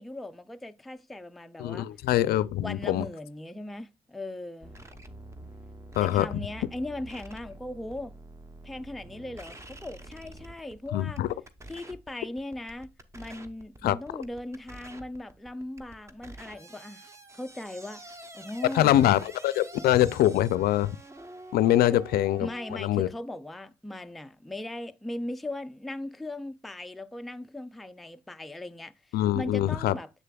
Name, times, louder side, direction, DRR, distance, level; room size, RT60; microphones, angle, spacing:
voice 1, 0.0-1.9 2.6-4.7 6.0-8.1 8.6-11.2 11.7-18.9 21.8-22.0 22.4-30.1, left 1 dB, ahead, 0.3 m, -38 dB
voice 2, 1.6-3.1 6.0-6.3 10.9-11.3 13.8-14.0 18.7-20.9 21.5-23.1 29.1-29.9, left 13 dB, 65° left, 0.4 m, -24 dB
sound 1, 4.6-22.8, right 1 dB, 15° right, 0.8 m, -47 dB
7.4 x 6.7 x 2.3 m
cardioid pair, 110°, 17 cm